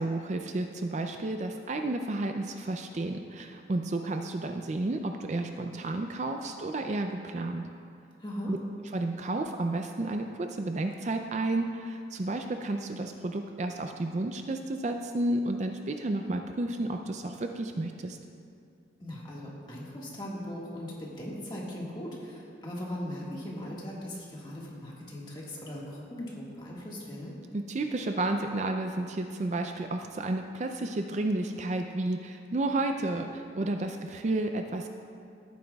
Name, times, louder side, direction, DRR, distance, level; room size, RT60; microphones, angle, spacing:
voice 1, 0.0-7.7 8.5-8.6 8.9-18.2 27.5-34.9, right 2 dB, 40° right, 5 dB, 0.4 m, -31 dB
voice 2, 8.2-8.5 19.0-27.4, left 1 dB, 25° left, -4 dB, 1.7 m, -39 dB
16.0 x 9.2 x 2.3 m, 2.4 s
head